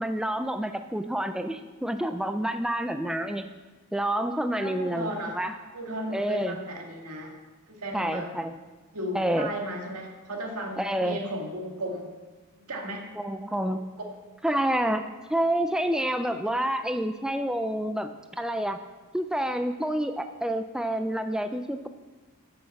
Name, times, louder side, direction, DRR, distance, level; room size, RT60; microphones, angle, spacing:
voice 1, 0.0-3.5 3.9-5.1 5.3-5.6 6.1-6.6 7.9-8.5 9.1-9.5 10.8-11.3 13.2-13.8 14.4-15.0 15.3-18.8 19.1-21.9, right 1 dB, 5° right, 8 dB, 0.3 m, -28 dB
voice 2, 4.6-5.4 5.7-7.3 7.7-8.3 8.9-12.1 12.7-13.1, equal, 75° right, 1 dB, 2.0 m, -35 dB
10.5 x 6.4 x 7.0 m, 1.3 s
head